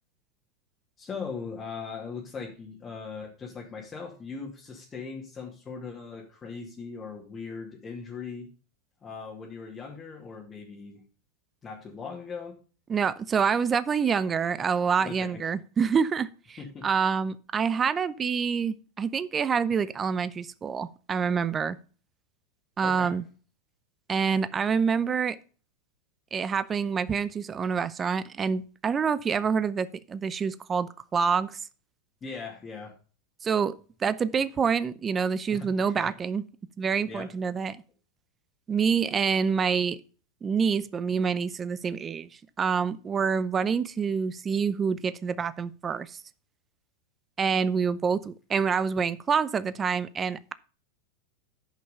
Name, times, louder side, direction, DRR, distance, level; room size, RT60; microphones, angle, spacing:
voice 1, 1.0-8.5 9.0-11.0 11.6-12.6 15.0-15.4 16.6-16.9 22.8-23.2 32.2-33.0 35.5-36.1 37.0-37.3, left 5 dB, 25° left, 2.4 m, -39 dB
voice 2, 12.9-16.6 16.8-21.8 22.8-23.2 24.1-25.4 26.3-31.6 33.4-36.4 36.8-37.8 38.7-40.0 40.4-42.3 42.6-46.2 47.4-50.5, right 6 dB, 25° right, 0.6 m, -27 dB
10.0 x 5.6 x 5.4 m
hypercardioid pair, 105°, 0 cm